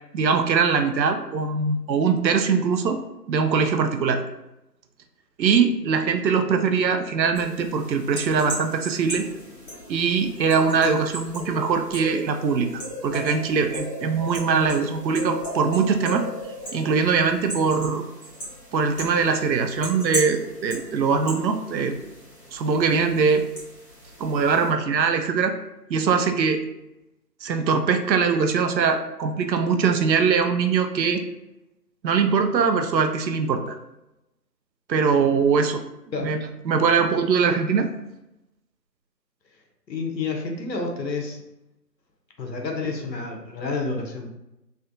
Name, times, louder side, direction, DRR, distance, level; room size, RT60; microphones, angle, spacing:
voice 1, 0.1-3.0 3.3-4.2 5.4-9.3 9.9-16.3 16.7-18.0 18.7-21.9 22.5-23.5 24.2-25.5 25.9-26.6 27.4-31.2 32.0-33.8 34.9-35.8 36.2-37.9, right 5 dB, 90° right, 7 dB, 0.6 m, -22 dB
sound 1, 7.4-24.7, equal, 40° left, 1.3 m, -37 dB
voice 2, 39.9-41.4 42.4-44.3, left 3 dB, 85° left, 2 dB, 0.8 m, -29 dB
3.3 x 2.2 x 2.6 m, 0.91 s
figure-of-eight pair, 160°, 50 cm